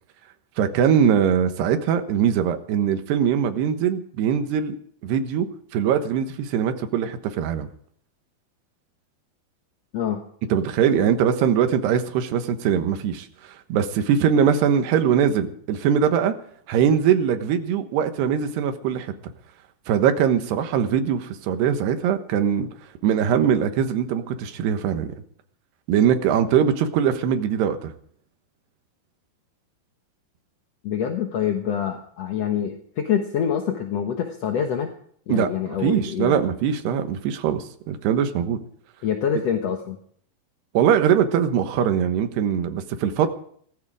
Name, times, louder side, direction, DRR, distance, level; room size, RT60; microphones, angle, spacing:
voice 1, 0.6-4.7 5.0-5.5 5.7-7.7 10.5-13.3 13.7-16.4 16.7-19.1 19.9-22.7 23.0-25.2 25.9-27.9 35.3-38.6 40.7-43.3, right 8 dB, 85° right, 8 dB, 3.4 m, -21 dB
voice 2, 30.8-34.9 35.3-36.4 39.0-40.0, left 8 dB, 65° left, 4 dB, 1.6 m, -26 dB
18.0 x 15.0 x 4.9 m, 0.62 s
omnidirectional pair, 4.6 m